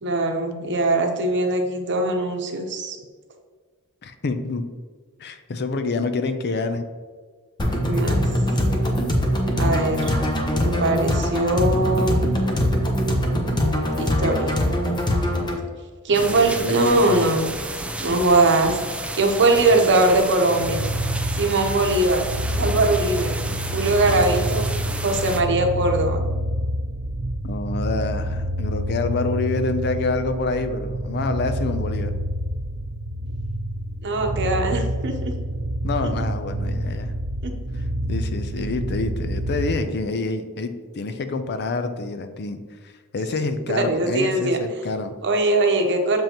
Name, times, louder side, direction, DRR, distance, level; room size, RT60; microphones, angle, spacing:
voice 1, 0.0-3.0 7.9-8.2 9.6-10.0 10.6-12.4 14.0-14.5 16.0-17.5 18.0-18.8 19.1-20.8 21.4-22.2 22.6-23.3 23.7-24.7 25.0-26.2 34.0-35.3 37.4-37.5 43.7-44.6 45.2-46.2, right 2 dB, 55° right, 3 dB, 0.9 m, -21 dB
voice 2, 4.0-4.6 5.2-6.9 16.2-17.3 27.4-32.1 35.8-37.1 37.7-42.6 42.8-45.1, left 3 dB, 50° left, 9 dB, 0.5 m, -27 dB
sound 1, 7.6-15.6, equal, 20° left, 1.0 m, -22 dB
sound 2, 16.1-25.4, right 2 dB, 5° right, 0.4 m, -31 dB
sound 3, 20.4-39.8, right 1 dB, 75° right, 0.6 m, -27 dB
7.1 x 5.5 x 3.0 m, 1.5 s
head